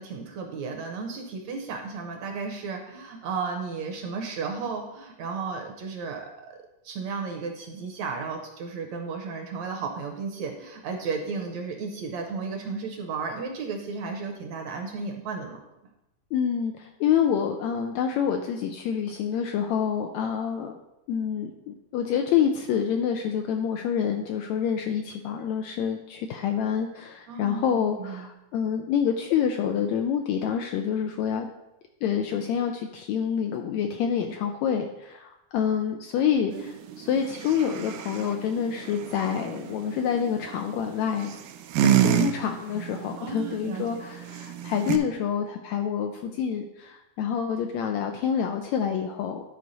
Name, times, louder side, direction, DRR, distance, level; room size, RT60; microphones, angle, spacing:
voice 1, 0.0-6.6 6.8-15.6 27.3-28.3 36.5-36.6 43.2-43.9, right 4 dB, 70° right, 3 dB, 1.9 m, -34 dB
voice 2, 16.3-20.7 21.1-31.5 32.0-36.7 37.0-41.3 41.8-49.4, left 8 dB, 80° left, 4 dB, 1.6 m, -27 dB
sound 1, 36.5-45.0, right 12 dB, 90° right, 2.2 m, -30 dB
11.0 x 4.5 x 4.0 m, 0.90 s
omnidirectional pair, 3.7 m